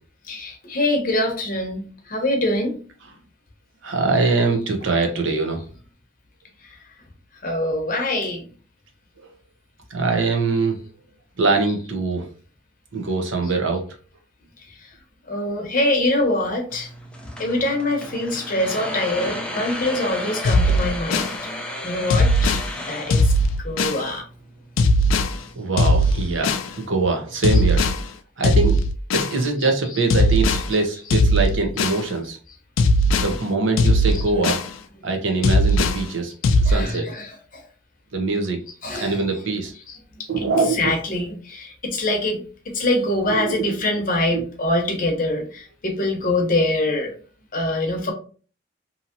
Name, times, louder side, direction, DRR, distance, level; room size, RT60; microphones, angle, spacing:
voice 1, 0.3-2.8 7.4-8.4 15.3-16.9 17.4-21.3 21.8-22.6 22.9-23.3 23.6-24.2 34.1-34.2 36.4-37.6 38.8-39.2 39.9-40.0 40.4-40.5 40.8-47.1 47.5-48.1, left 1 dB, 45° left, 0.8 m, -24 dB
voice 2, 3.8-5.6 9.2-9.3 9.9-10.8 11.4-12.3 12.9-13.8 25.6-27.9 28.4-28.8 29.1-32.4 33.2-34.6 35.0-36.3 36.6-37.1 38.1-38.6 38.9-39.7 40.3-40.9 43.3-43.8 44.3-44.4, right 3 dB, 70° right, 0.7 m, -23 dB
sound 1, 16.7-27.8, left 1 dB, 5° left, 0.4 m, -35 dB
sound 2, 20.4-21.3 22.1-22.7 23.1-24.0 24.8-25.3 25.8-26.7 27.4-28.0 28.4-29.4 30.1-30.7 31.1-32.0 32.8-33.3 33.8-34.7 35.4-36.0 36.4-36.7, left 1 dB, 80° left, 0.4 m, -18 dB
2.8 x 2.7 x 2.5 m
head